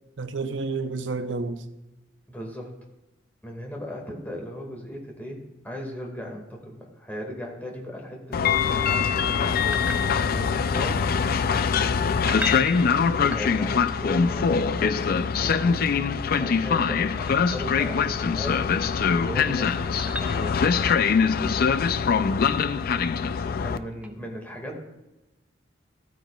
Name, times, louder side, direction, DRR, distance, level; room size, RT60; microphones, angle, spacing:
voice 1, 0.2-1.6, right 3 dB, 75° right, 0.7 m, -30 dB
voice 2, 2.3-2.7 3.4-9.0 10.2-11.1 12.9-15.8 16.3-18.6 19.2-20.6 23.6-24.8, equal, 10° left, 1.9 m, -37 dB
Train, 8.3-23.8, left 6 dB, 55° left, 0.4 m, -23 dB
sound 1, 9.4-10.7 12.1-14.0 16.1-17.8 19.2-21.3 24.0-24.1, left 2 dB, 10° right, 0.6 m, -38 dB
14.5 x 9.1 x 2.3 m
head